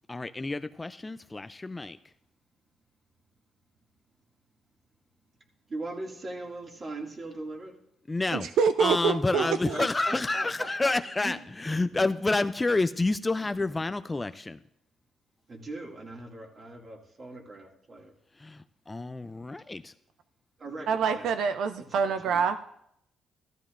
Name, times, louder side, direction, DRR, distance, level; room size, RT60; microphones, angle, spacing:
voice 1, 0.1-2.0 8.1-8.5 8.8-14.6 18.4-19.9, left 2 dB, 20° left, 12 dB, 0.3 m, -29 dB
voice 2, 5.7-7.7 9.3-9.4 10.1-10.7 11.2-11.3 15.5-18.1 20.6-21.3 21.8-22.4, right 2 dB, 35° right, 0 dB, 2.1 m, -40 dB
voice 3, 8.3-9.9 20.9-22.6, right 6 dB, 75° right, 10 dB, 0.4 m, -26 dB
14.5 x 13.5 x 2.5 m, 0.76 s
cardioid pair, 90°, 0 cm